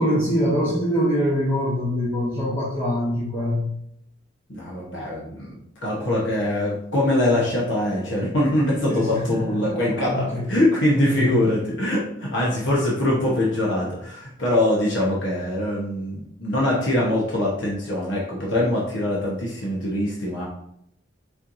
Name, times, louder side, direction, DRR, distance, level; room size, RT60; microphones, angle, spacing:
voice 1, 0.0-3.7 8.9-10.5 10.9-11.5, equal, 25° left, -7 dB, 1.1 m, -24 dB
voice 2, 4.5-20.4, left 1 dB, 70° left, -5 dB, 1.0 m, -23 dB
4.4 x 4.3 x 2.6 m, 0.73 s
head